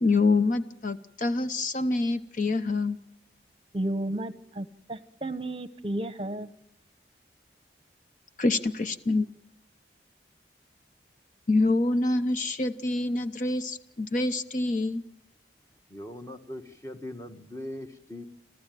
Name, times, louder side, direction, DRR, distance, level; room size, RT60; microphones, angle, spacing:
voice 1, 0.0-3.0 8.4-9.3 11.5-15.0, left 2 dB, 45° left, 10 dB, 0.7 m, -26 dB
voice 2, 3.7-6.5, right 1 dB, 30° right, 13 dB, 0.8 m, -33 dB
voice 3, 15.9-18.3, left 1 dB, 15° left, 6 dB, 1.3 m, -40 dB
27.5 x 14.5 x 9.1 m, 0.83 s
head